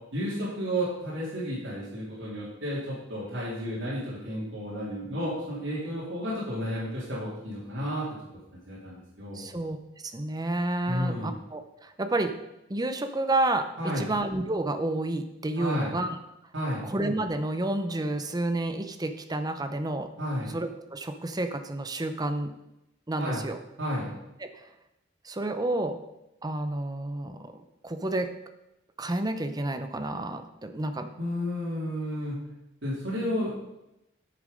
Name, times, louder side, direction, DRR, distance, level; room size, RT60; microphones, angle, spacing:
voice 1, 0.1-8.1 8.7-9.4 10.9-11.3 13.8-14.1 15.6-15.9 16.5-16.9 20.2-20.5 23.2-23.4 23.8-24.1 31.2-32.4 32.8-33.5, equal, 80° right, -8 dB, 2.8 m, -32 dB
voice 2, 9.3-9.8 10.0-12.4 12.7-16.2 16.8-20.1 20.5-22.5 23.1-23.6 24.4-24.7 25.2-26.0 26.4-28.3 29.0-31.1, right 2 dB, 20° right, 8 dB, 0.7 m, -30 dB
8.6 x 6.7 x 5.3 m, 0.90 s
head